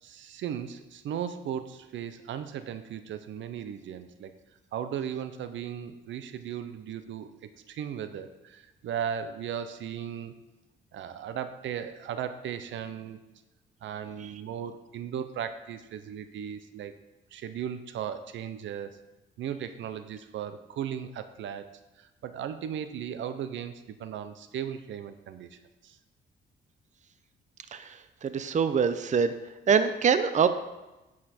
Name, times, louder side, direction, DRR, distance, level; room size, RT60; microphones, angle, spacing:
voice 1, 0.0-4.3 4.7-10.4 10.9-13.2 13.8-16.9 17.3-19.0 19.4-23.7 24.0-26.0, right 9 dB, 75° right, 11 dB, 0.7 m, -37 dB
voice 2, 27.7-29.3 29.7-30.5, right 6 dB, 35° right, 11 dB, 0.6 m, -25 dB
10.0 x 7.5 x 4.4 m, 1.0 s
cardioid pair, 90°, 20 cm